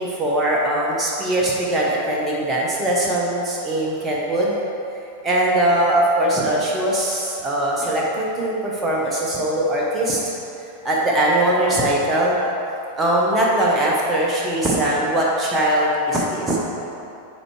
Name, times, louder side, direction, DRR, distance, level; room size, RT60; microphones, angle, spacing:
voice 1, 0.0-4.6 5.2-10.2 10.8-12.4 13.0-16.6, right 1 dB, 15° right, -4 dB, 0.9 m, -21 dB
7.6 x 4.4 x 3.2 m, 2.7 s
figure-of-eight pair, 90°, 0 cm